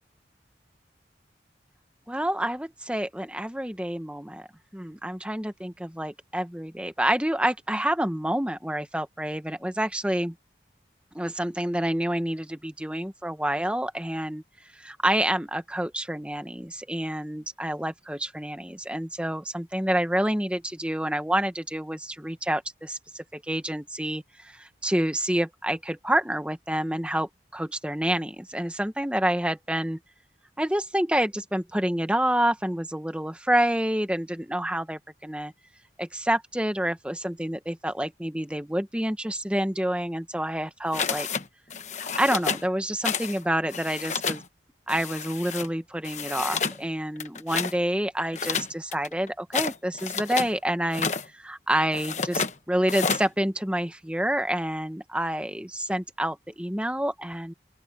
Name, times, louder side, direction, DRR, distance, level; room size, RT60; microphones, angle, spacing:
voice 1, 2.1-4.5 4.7-10.3 11.1-14.4 14.7-30.0 30.6-35.5 36.0-41.3 42.2-44.4 44.9-57.5, right 1 dB, 5° right, 1.2 m, -28 dB
sound 1, 40.9-41.4 41.7-42.7 43.0-43.4 43.6-44.4 44.9-45.7 46.0-46.8 47.2-47.7 48.3-50.5 50.9-51.3 51.9-52.5 52.9-53.3, left 6 dB, 40° left, 1.1 m, -30 dB
open air
head